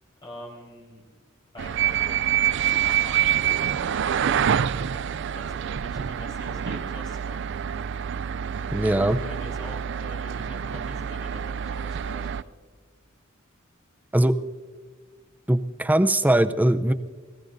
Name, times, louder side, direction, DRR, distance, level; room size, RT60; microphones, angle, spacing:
voice 1, 0.2-1.0 1.5-5.0 5.3-7.5 8.6-12.4, left 1 dB, 20° left, -2 dB, 4.4 m, -44 dB
sound 1, 1.6-12.4, right 9 dB, 60° right, 0.4 m, -26 dB
voice 2, 8.7-9.2 14.1-14.4 15.5-16.9, right 1 dB, 10° right, 10 dB, 0.5 m, -20 dB
28.5 x 19.0 x 2.6 m, 1.5 s
head